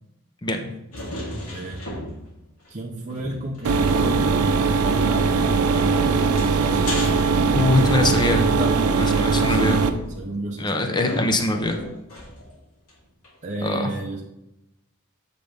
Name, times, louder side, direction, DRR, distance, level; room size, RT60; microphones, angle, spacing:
voice 1, 0.4-0.7 7.5-8.5 9.0-9.8 10.6-11.8 13.6-13.9, left 2 dB, 20° left, 4 dB, 0.6 m, -22 dB
sound 1, 0.9-2.4 2.6-2.7 3.1-4.3 5.3-8.0 8.5-12.5 12.9-13.0 13.2-13.3, left 1 dB, 85° left, 2.1 m, -35 dB
voice 2, 1.5-1.8 2.7-7.0 8.4-9.7 10.2-10.7 13.4-14.2, right 2 dB, 35° right, -1 dB, 0.6 m, -32 dB
sound 2, 3.7-9.9, right 4 dB, 85° right, 0.5 m, -20 dB
8.0 x 3.8 x 3.5 m, 0.90 s
head